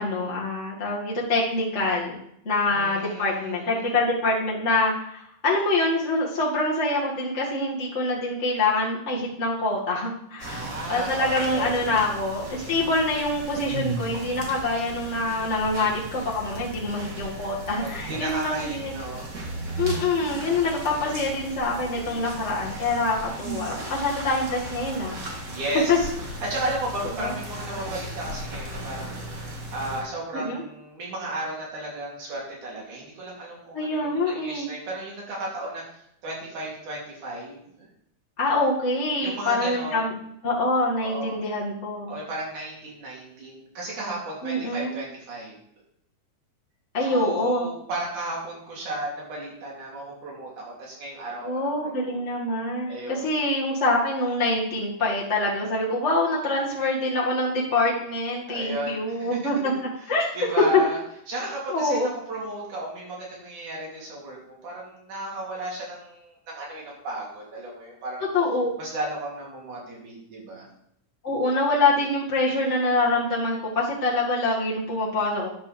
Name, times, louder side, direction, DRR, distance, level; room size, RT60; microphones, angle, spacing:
voice 1, 0.0-2.2 2.5-18.9 19.8-25.2 25.9-26.0 27.2-27.3 30.3-30.6 33.7-34.7 38.4-40.1 40.4-42.1 44.4-44.9 46.9-47.7 51.4-59.7 60.1-60.3 61.7-62.1 68.3-68.7 71.2-75.5, left 2 dB, 25° left, -5 dB, 1.8 m, -25 dB
voice 2, 2.7-4.0 10.4-12.0 17.8-19.3 20.5-21.0 25.4-37.9 39.2-40.1 41.0-41.4 42.1-45.6 47.0-52.2 52.9-53.4 58.5-59.4 60.0-60.1 60.3-61.0 61.3-68.2 68.8-70.7, right 1 dB, 80° right, -4 dB, 4.9 m, -34 dB
sound 1, 10.4-30.0, right 1 dB, 35° right, 1.8 m, -36 dB
10.5 x 5.6 x 6.9 m, 0.74 s
omnidirectional pair, 3.5 m